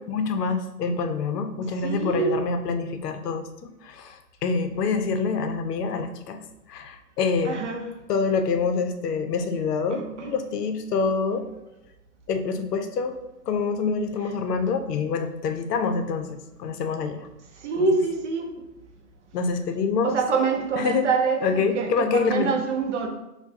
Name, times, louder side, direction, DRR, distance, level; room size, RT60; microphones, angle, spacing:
voice 1, 0.1-3.5 3.8-6.4 6.7-7.6 8.1-11.5 12.3-13.2 13.5-17.3 19.3-20.2 20.8-21.1 21.4-22.5, left 5 dB, 75° left, 7 dB, 0.6 m, -26 dB
voice 2, 1.8-2.4 7.4-7.9 9.9-10.3 17.6-18.5 20.0-23.1, right 4 dB, 50° right, 3 dB, 0.6 m, -25 dB
4.5 x 2.2 x 2.7 m, 0.91 s
hypercardioid pair, 160°, 48 cm